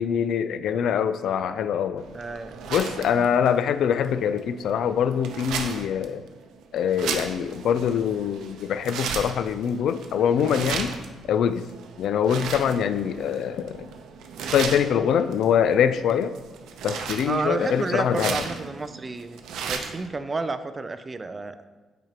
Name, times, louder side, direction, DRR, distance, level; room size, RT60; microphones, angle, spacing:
voice 1, 0.0-2.1 2.7-6.2 6.7-10.9 11.3-11.7 12.0-13.9 14.5-16.4 16.8-18.5, left 8 dB, 75° left, 12 dB, 0.3 m, -24 dB
sound 1, 2.0-20.1, right 6 dB, 85° right, 0.6 m, -36 dB
voice 2, 2.1-2.6 3.1-3.2 17.3-19.4 19.7-21.6, right 3 dB, 30° right, 11 dB, 0.4 m, -30 dB
7.6 x 5.1 x 2.9 m, 1.3 s
cardioid pair, 90°, 0 cm